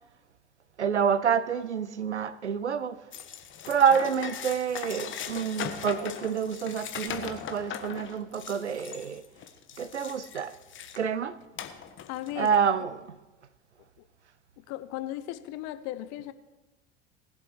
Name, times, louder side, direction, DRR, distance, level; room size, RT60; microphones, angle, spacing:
voice 1, 0.8-3.0 3.7-9.2 9.8-10.6 11.0-11.4 12.4-13.1, right 7 dB, 90° right, 0.7 m, -27 dB
sound 1, 3.1-11.1 11.6-12.5, left 8 dB, 35° left, 1.5 m, -39 dB
voice 2, 12.1-12.6 14.0-14.1 14.6-16.3, left 14 dB, 50° left, 1.0 m, -36 dB
20.0 x 7.6 x 4.7 m
figure-of-eight pair, 75°, 34 cm